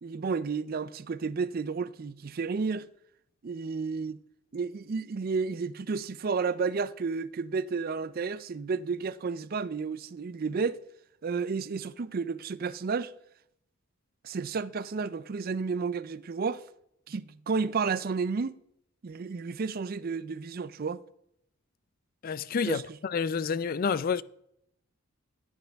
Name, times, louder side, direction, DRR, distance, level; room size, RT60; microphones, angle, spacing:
voice 1, 0.0-2.9 3.4-4.2 4.5-10.8 11.2-13.1 14.2-16.6 17.1-18.6 19.0-21.0 22.6-22.8, right 5 dB, 45° right, 0.4 m, -31 dB
voice 2, 22.2-24.2, left 6 dB, 40° left, 0.4 m, -29 dB
15.5 x 9.3 x 3.5 m
head